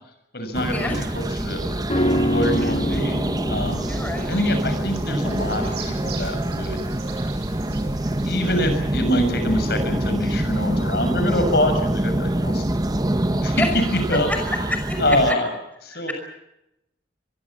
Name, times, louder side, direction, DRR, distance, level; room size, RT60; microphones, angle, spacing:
voice 1, 0.3-1.7 2.3-3.2 3.5-3.9 4.3-6.8 8.2-12.6 13.4-13.5 14.1-14.3 15.0-15.5 15.8-16.1, left 1 dB, 60° left, 7 dB, 6.7 m, -25 dB
sound 1, 0.5-15.3, right 1 dB, 20° right, 1.0 m, -25 dB
sound 2, 1.9-11.3 11.6-11.7, equal, 35° left, 4.0 m, -29 dB
Bird vocalization bird call bird song, 3.7-8.7, right 6 dB, 65° right, 7.4 m, -42 dB
voice 2, 3.8-4.3 7.7-7.9 13.5-13.7 14.3-14.4 14.7-15.4 15.9-16.1, left 1 dB, 10° left, 4 dB, 5.6 m, -28 dB
25.5 x 23.0 x 7.4 m, 0.87 s
head